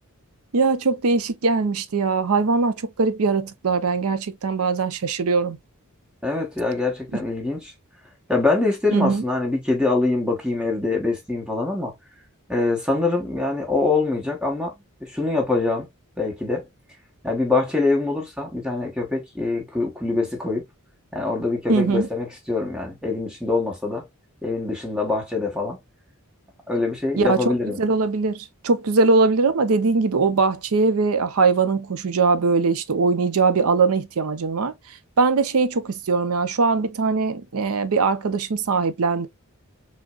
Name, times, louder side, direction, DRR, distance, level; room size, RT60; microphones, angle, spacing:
voice 1, 0.5-5.6 8.9-9.2 21.7-22.1 27.2-39.3, right 4 dB, 75° right, 0.6 m, -21 dB
voice 2, 6.2-7.7 8.3-11.9 12.5-15.9 16.2-16.6 17.2-20.6 21.1-24.1 24.4-25.8 26.7-27.8, left 3 dB, 5° right, 1.1 m, -24 dB
6.0 x 2.1 x 2.3 m
head